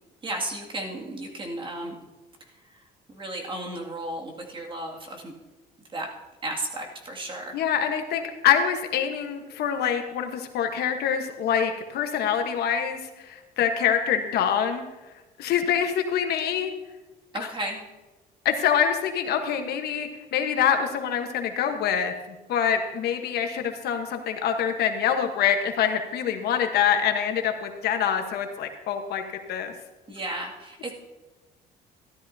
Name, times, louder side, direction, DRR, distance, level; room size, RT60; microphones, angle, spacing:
voice 1, 0.2-2.0 2.7-2.8 3.1-5.3 5.9-6.1 6.4-7.6 17.3-17.8 30.1-30.9, right 1 dB, 30° right, 0 dB, 2.3 m, -34 dB
voice 2, 7.5-14.8 15.4-16.7 18.4-22.1 22.5-29.2 29.5-29.7, left 8 dB, 70° left, 5 dB, 1.3 m, -25 dB
14.5 x 12.5 x 2.8 m, 1.1 s
cardioid pair, 110°, 17 cm